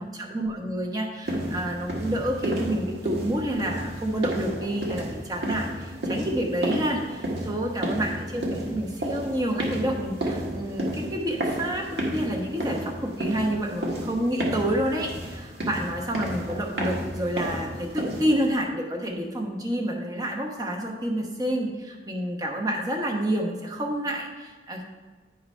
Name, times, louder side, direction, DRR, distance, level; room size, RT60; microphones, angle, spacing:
voice 1, 0.0-24.8, right 1 dB, 20° right, 0 dB, 1.0 m, -29 dB
sound 1, 1.2-18.5, right 1 dB, 75° right, 1.6 m, -32 dB
9.9 x 3.9 x 5.4 m, 1.4 s
head